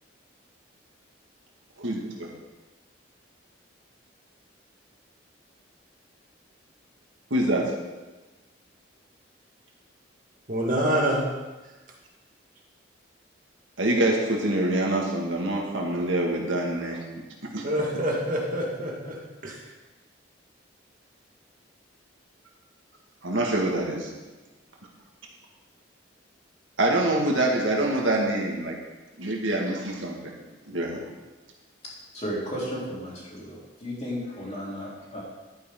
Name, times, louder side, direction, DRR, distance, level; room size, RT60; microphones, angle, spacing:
voice 1, 1.8-2.3 7.3-7.7 13.8-17.0 17.5-17.7 23.2-24.1 26.8-28.8 29.2-30.3 30.7-31.1, right 1 dB, 90° right, 0 dB, 1.9 m, -25 dB
voice 2, 10.5-11.3 17.6-19.6, equal, 45° right, -1 dB, 1.6 m, -26 dB
voice 3, 32.1-35.2, equal, 35° left, -6 dB, 3.5 m, -34 dB
11.5 x 9.4 x 3.8 m, 1.2 s
head